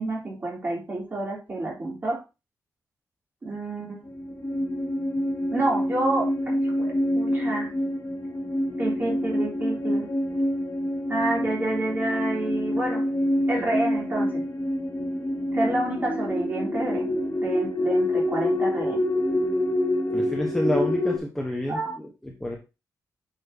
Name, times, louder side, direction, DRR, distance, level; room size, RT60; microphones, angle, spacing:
voice 1, 0.0-2.2 3.4-4.1 5.5-7.7 8.8-10.1 11.1-13.1 13.5-14.4 15.5-19.0 21.7-21.9, right 2 dB, 30° right, -3 dB, 3.5 m, -29 dB
sound 1, 4.0-21.2, left 1 dB, 40° left, 2.1 m, -26 dB
voice 2, 20.1-21.8 22.4-22.6, equal, 5° left, -1 dB, 1.2 m, -28 dB
8.9 x 5.9 x 2.9 m, 0.28 s
wide cardioid pair, 175°, 7 cm